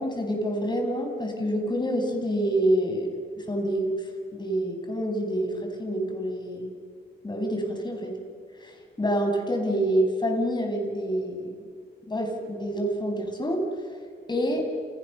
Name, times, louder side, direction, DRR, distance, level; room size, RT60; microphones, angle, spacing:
voice 1, 0.0-3.9 4.3-6.7 7.2-8.2 8.6-11.5 12.1-13.7 14.3-14.7, right 1 dB, 20° left, 3 dB, 7.1 m, -27 dB
29.5 x 29.5 x 6.9 m, 2.1 s
cardioid pair, 90°, 20 cm